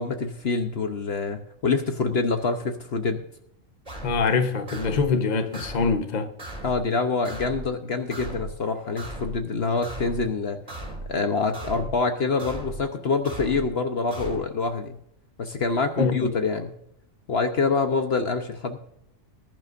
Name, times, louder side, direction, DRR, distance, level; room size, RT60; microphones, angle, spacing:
voice 1, 0.0-3.2 6.6-10.6 11.1-15.0 15.4-16.8 17.3-18.8, left 4 dB, 55° left, 6 dB, 1.2 m, -26 dB
sound 1, 3.9-4.2 4.7-5.1 5.5-6.0 6.4-6.8 7.2-7.7 8.1-8.5 9.0-9.4 9.8-10.2 10.7-11.1 11.5-12.0 12.4-12.8 13.2-13.7 14.1-14.4, right 1 dB, 35° right, 3.3 m, -36 dB
voice 2, 4.0-6.3 16.0-16.3, left 4 dB, 35° left, 7 dB, 1.1 m, -24 dB
20.0 x 11.0 x 2.6 m, 0.72 s
omnidirectional pair, 1.3 m